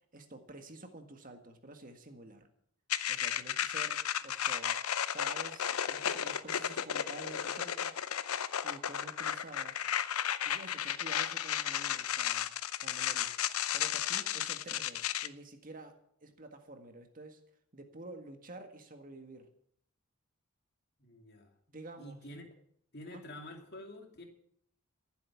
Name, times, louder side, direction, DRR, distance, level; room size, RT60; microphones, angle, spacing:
voice 1, 0.1-2.5 3.1-4.8 5.1-8.0 8.6-9.9 10.4-12.5 12.8-13.3 13.7-16.0 16.2-17.4 17.7-19.5 21.7-22.2 23.1-23.2, right 2 dB, 40° right, 6 dB, 1.8 m, -49 dB
sound 1, 2.9-15.3, left 10 dB, 80° left, 0.7 m, -34 dB
voice 2, 21.0-21.5 22.0-22.4 22.9-24.2, left 1 dB, 45° left, 3 dB, 2.6 m, -48 dB
14.5 x 8.0 x 8.4 m, 0.66 s
head